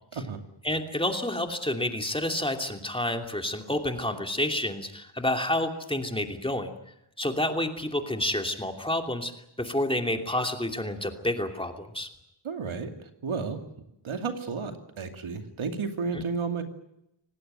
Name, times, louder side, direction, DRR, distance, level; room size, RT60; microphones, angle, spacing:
voice 1, 0.6-6.7 7.2-9.3 9.6-12.1 16.1-16.2, left 1 dB, 10° left, 4 dB, 2.9 m, -29 dB
voice 2, 12.4-13.6 14.0-16.6, right 5 dB, 85° right, 6 dB, 2.7 m, -32 dB
27.0 x 18.5 x 9.1 m, 0.82 s
wide cardioid pair, 105°, 47 cm